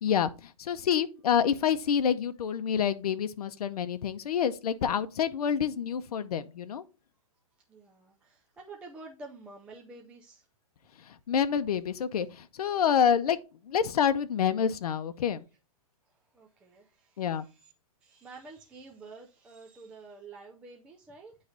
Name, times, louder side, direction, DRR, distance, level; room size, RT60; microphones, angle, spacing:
voice 1, 0.0-6.8 11.0-13.4 13.6-15.4 17.2-17.4, left 8 dB, 85° left, 0.6 m, -27 dB
voice 2, 7.7-10.5 16.0-17.7 18.0-21.4, right 3 dB, 5° right, 0.4 m, -49 dB
9.4 x 3.2 x 3.8 m
hypercardioid pair, 160°, 19 cm